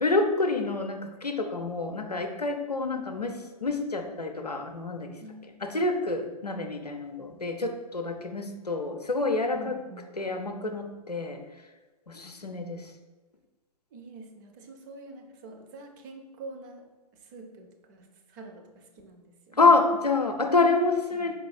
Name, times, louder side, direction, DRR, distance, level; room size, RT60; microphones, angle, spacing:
voice 1, 0.0-5.1 5.6-9.7 10.2-11.4 12.1-12.9 19.6-21.3, left 3 dB, 90° left, 4 dB, 0.6 m, -27 dB
voice 2, 9.5-10.1 13.9-16.9 17.1-19.7 21.1-21.3, right 2 dB, 30° right, 5 dB, 0.5 m, -46 dB
5.3 x 4.0 x 2.4 m, 1.2 s
figure-of-eight pair, 115°, 20 cm